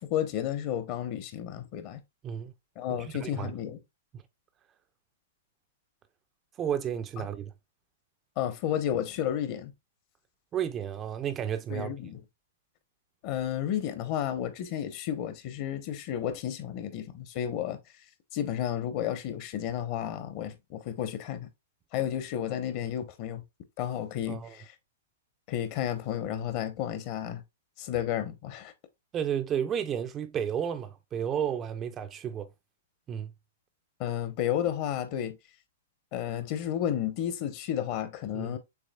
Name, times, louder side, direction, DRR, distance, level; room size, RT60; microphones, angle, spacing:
voice 1, 0.0-2.0 2.8-3.8 7.2-7.3 8.4-9.7 11.7-12.2 13.2-17.8 18.3-21.5 21.9-23.4 23.8-24.7 25.5-27.4 27.8-28.7 34.0-35.4 36.1-38.6, left 10 dB, 40° left, 0.8 m, -32 dB
voice 2, 3.2-3.5 6.6-7.5 10.5-11.9 24.3-24.5 29.1-32.5 33.1-33.3 38.3-38.6, right 9 dB, 20° right, 0.3 m, -32 dB
6.9 x 3.1 x 2.2 m
hypercardioid pair, 145°, 0 cm